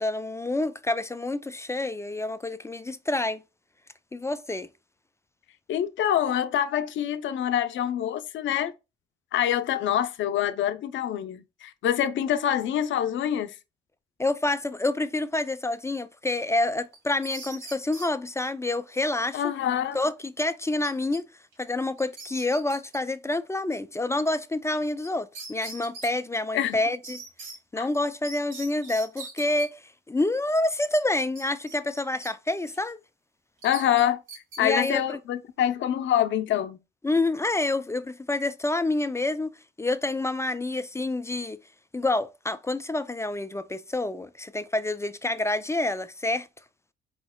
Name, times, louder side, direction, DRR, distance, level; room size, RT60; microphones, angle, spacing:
voice 1, 0.0-3.4 4.1-4.7 14.2-19.5 19.9-21.3 21.6-27.2 27.7-33.0 34.6-35.2 37.0-39.5 39.8-41.6 41.9-46.5, left 2 dB, 15° left, 0.3 m, -28 dB
voice 2, 5.7-8.7 9.3-13.5 19.3-20.0 26.5-26.8 27.8-27.9 33.6-34.2 34.6-36.8, left 10 dB, 70° left, 0.6 m, -26 dB
sound 1, 16.9-18.1 20.8-21.2 21.5-21.6 22.0-23.0 25.0-25.1 25.3-26.1 27.0-27.6 28.2-29.7 31.3-32.3 32.7-32.9 33.6-34.6, right 3 dB, 85° right, 2.0 m, -41 dB
4.5 x 4.2 x 2.2 m
cardioid pair, 90°, 20 cm